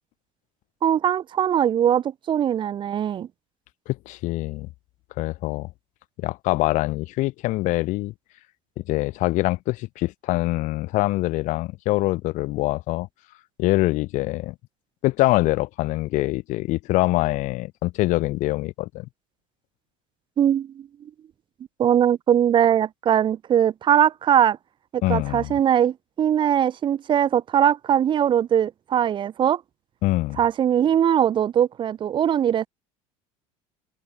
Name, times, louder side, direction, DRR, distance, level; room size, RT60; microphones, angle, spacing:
voice 1, 0.8-3.3 20.4-21.1 21.8-24.6 25.1-29.6 30.4-32.7, right 9 dB, 35° right, 0.5 m, -21 dB
voice 2, 3.9-4.7 5.2-5.7 6.2-8.1 8.8-13.1 13.6-14.5 15.0-19.1 25.0-25.6 30.0-30.4, left 19 dB, 60° left, 0.7 m, -24 dB
open air
supercardioid pair, 100°, 14 cm